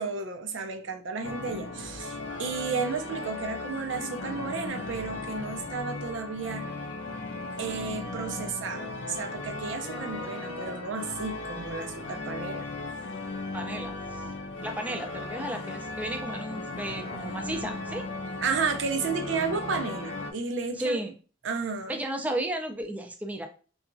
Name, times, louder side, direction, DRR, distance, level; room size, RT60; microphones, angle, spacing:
voice 1, 0.0-6.7 7.6-12.7 18.4-21.0 21.4-21.9, right 4 dB, 80° right, 0.5 m, -32 dB
sound 1, 1.2-20.3, left 2 dB, 70° left, 0.5 m, -37 dB
voice 2, 13.5-14.2 14.6-18.1 20.8-21.1 21.9-23.5, right 1 dB, 10° right, 0.4 m, -33 dB
2.8 x 2.4 x 2.5 m
head